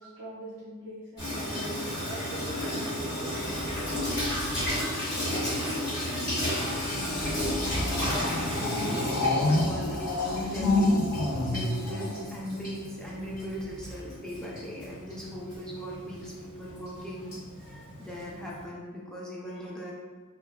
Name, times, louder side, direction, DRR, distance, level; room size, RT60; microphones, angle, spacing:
voice 1, 0.0-3.8, right 1 dB, 75° right, -6 dB, 0.5 m, -43 dB
Water tap faucet / Sink (filling or washing), 1.2-18.6, left 1 dB, 40° left, 1.1 m, -33 dB
sound 1, 3.3-5.4 6.4-12.9 13.8-14.1, left 2 dB, 70° left, 0.5 m, -30 dB
voice 2, 7.6-19.9, equal, 5° left, -4 dB, 0.4 m, -40 dB
2.7 x 2.2 x 2.3 m, 1.5 s
head